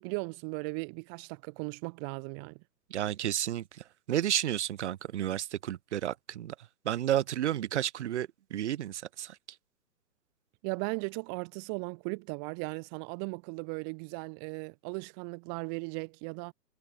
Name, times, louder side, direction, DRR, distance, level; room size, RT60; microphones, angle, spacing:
voice 1, 0.0-2.6 10.6-16.5, right 40 dB or more, 15° right, 0.8 m, -37 dB
voice 2, 2.9-3.6 4.1-6.5 6.9-9.3, right 12 dB, 45° right, 1.8 m, -31 dB
hypercardioid pair, 140°, 50 cm